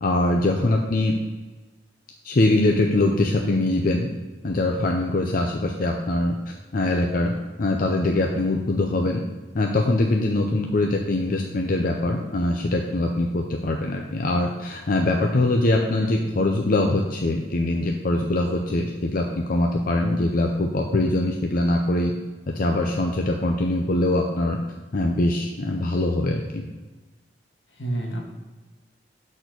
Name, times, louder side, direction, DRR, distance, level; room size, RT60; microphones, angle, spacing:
voice 1, 0.0-1.1 2.2-4.1 4.4-9.2 9.5-22.1 22.5-24.6 24.9-26.7, left 2 dB, 50° left, 2 dB, 0.6 m, -23 dB
voice 2, 27.7-28.3, right 1 dB, 80° left, -1 dB, 1.7 m, -30 dB
6.7 x 4.3 x 6.1 m, 1.3 s
head